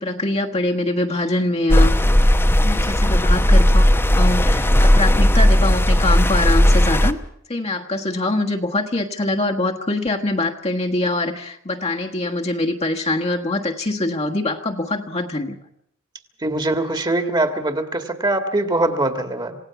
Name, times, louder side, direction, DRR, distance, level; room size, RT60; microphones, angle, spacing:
voice 1, 0.0-1.9 2.6-7.2 7.5-15.6, left 2 dB, 30° left, 1 dB, 1.5 m, -23 dB
sound 1, 1.7-7.1, equal, 10° left, 0.9 m, -15 dB
voice 2, 16.4-19.6, right 2 dB, 20° right, 7 dB, 1.9 m, -22 dB
27.5 x 17.0 x 5.9 m, 0.70 s
head